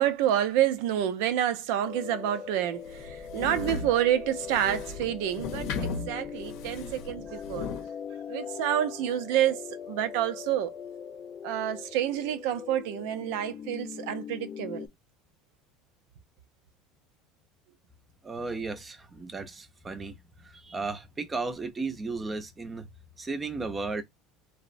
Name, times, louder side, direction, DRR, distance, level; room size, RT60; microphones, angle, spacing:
voice 1, 0.0-7.7 8.3-10.7 11.4-14.9, right 11 dB, 75° right, 0.5 m, -28 dB
sound 1, 1.8-14.9, left 8 dB, 35° left, 0.4 m, -41 dB
sound 2, 2.8-7.9, left 4 dB, 65° left, 0.7 m, -37 dB
voice 2, 18.2-22.9 23.2-24.0, right 3 dB, 15° right, 0.5 m, -35 dB
2.9 x 2.1 x 2.5 m
supercardioid pair, 130°, 0 cm